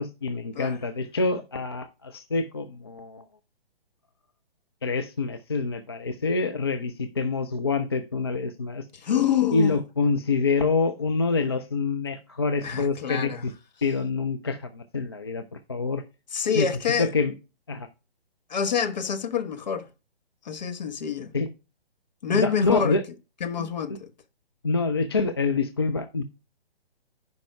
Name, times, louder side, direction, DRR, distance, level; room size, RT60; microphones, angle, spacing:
voice 1, 0.0-3.2 4.8-8.8 9.5-13.5 13.8-15.4 15.7-16.0 16.5-16.7 17.0-17.3 17.7-17.9 21.3-21.5 22.3-23.0 24.6-26.2, left 4 dB, 25° left, 0.3 m, -26 dB
voice 2, 8.9-9.8 12.6-13.4 16.3-17.1 18.5-19.9 20.4-21.3 22.2-23.0 23.4-24.1, left 7 dB, 45° left, 1.1 m, -27 dB
15.0 x 5.2 x 2.2 m
figure-of-eight pair, 130°, 30 cm